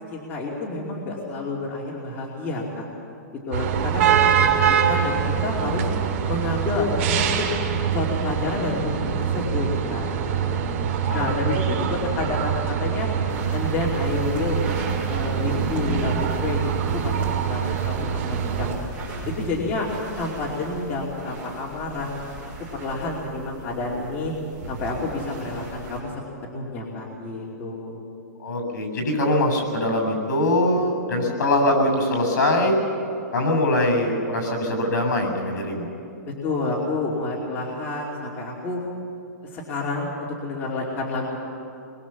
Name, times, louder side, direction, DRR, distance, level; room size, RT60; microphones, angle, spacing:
voice 1, 0.1-2.9 3.5-4.6 4.9-5.8 6.3-7.2 7.9-10.6 11.1-13.1 13.5-14.7 15.0-16.2 16.4-16.6 16.9-18.7 19.3-19.9 20.2-22.1 22.7-24.3 24.7-26.1 26.4-28.0 36.4-38.8 39.5-41.4, left 2 dB, 20° left, -3 dB, 2.7 m, -29 dB
sound 1, 3.5-18.7, right 8 dB, 45° right, 2.5 m, -24 dB
sound 2, 13.3-26.0, right 2 dB, 15° right, 5.8 m, -38 dB
voice 2, 28.4-32.8 33.3-35.9, left 1 dB, 65° left, 4 dB, 7.4 m, -22 dB
23.5 x 22.0 x 7.2 m, 2.7 s
hypercardioid pair, 160°, 10 cm